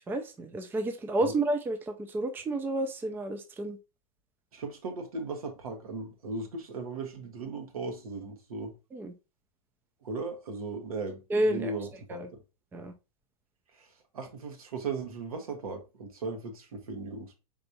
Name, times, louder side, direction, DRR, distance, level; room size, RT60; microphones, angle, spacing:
voice 1, 0.1-3.8 8.9-9.1 11.3-11.7 12.1-12.3 12.7-12.9, right 1 dB, 10° right, 0.4 m, -30 dB
voice 2, 4.5-8.7 10.0-12.2 13.7-13.9 14.1-17.4, right 3 dB, 75° right, 1.2 m, -37 dB
4.1 x 3.4 x 2.7 m
hypercardioid pair, 100°, 19 cm